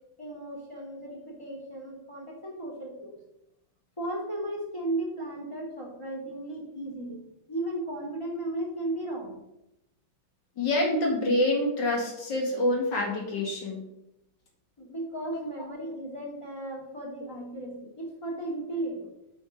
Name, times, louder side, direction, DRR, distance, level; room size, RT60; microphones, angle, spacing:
voice 1, 0.2-3.2 4.0-7.2 7.5-9.4 14.8-19.1, right 1 dB, 15° left, -1 dB, 2.9 m, -35 dB
voice 2, 10.6-13.9, left 1 dB, 75° left, -1 dB, 3.0 m, -26 dB
9.1 x 5.2 x 6.4 m, 0.88 s
omnidirectional pair, 1.9 m